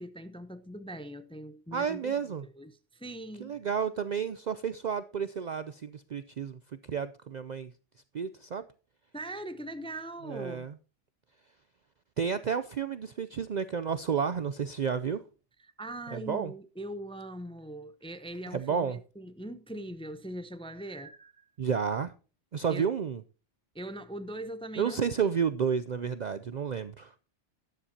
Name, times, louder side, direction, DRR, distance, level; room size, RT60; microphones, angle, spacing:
voice 1, 0.0-2.1 2.5-3.6 9.1-10.7 15.6-21.4 22.7-22.9 23.7-25.3, right 1 dB, 5° left, 0.5 m, -41 dB
voice 2, 1.7-2.4 3.4-6.6 6.9-7.7 8.1-8.6 10.3-10.7 12.2-15.2 16.1-16.5 18.5-19.0 21.6-22.1 22.5-23.2 24.8-27.1, right 6 dB, 55° right, 0.5 m, -31 dB
13.0 x 9.9 x 2.7 m
omnidirectional pair, 1.2 m